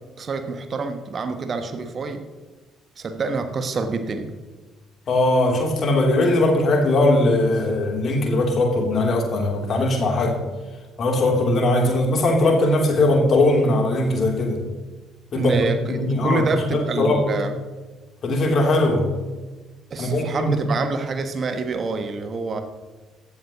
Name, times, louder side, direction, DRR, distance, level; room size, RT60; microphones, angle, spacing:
voice 1, 0.2-2.2 3.0-4.3 15.3-17.5 19.9-22.6, right 4 dB, 40° right, 8 dB, 1.3 m, -27 dB
voice 2, 5.1-10.4 11.0-14.6 15.3-15.6 15.9-16.5 16.7-17.2 18.2-19.1 20.0-20.5, left 2 dB, 45° left, 1 dB, 3.3 m, -20 dB
15.5 x 12.5 x 3.0 m, 1.3 s
figure-of-eight pair, 50°, 0 cm